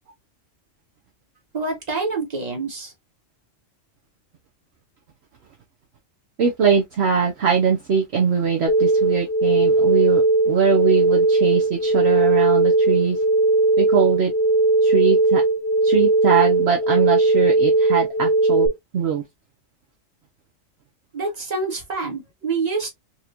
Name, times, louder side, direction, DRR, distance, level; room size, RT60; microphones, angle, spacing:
voice 1, 1.5-2.9 21.1-22.9, right 3 dB, 30° right, 1.4 m, -26 dB
voice 2, 6.4-13.2 13.8-14.3 14.8-15.4 15.8-18.7 18.9-19.2, right 6 dB, 60° right, 1.0 m, -21 dB
sound 1, 8.7-18.7, right 2 dB, 45° left, 1.1 m, -18 dB
4.2 x 2.9 x 2.4 m
omnidirectional pair, 1.3 m